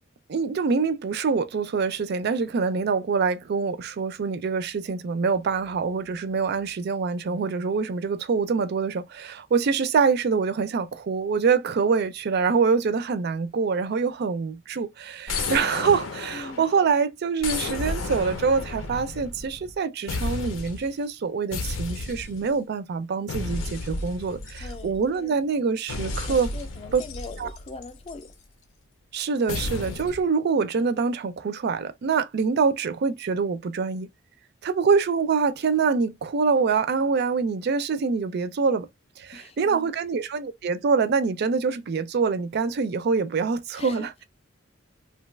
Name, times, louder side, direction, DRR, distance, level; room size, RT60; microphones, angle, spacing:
voice 1, 0.3-26.5 26.9-27.0 27.4-27.5 29.1-34.1 34.6-38.9 39.2-44.2, right 5 dB, 55° right, 0.4 m, -25 dB
sound 1, 15.3-16.9 17.4-19.8 20.1-20.9 21.5-22.5 23.3-25.2 25.9-28.3 29.5-30.2, left 3 dB, 90° left, 0.6 m, -33 dB
voice 2, 16.3-16.7 24.6-25.4 26.2-28.3 39.3-39.9 43.8-44.1, left 3 dB, 30° left, 0.4 m, -41 dB
2.8 x 2.3 x 3.2 m
head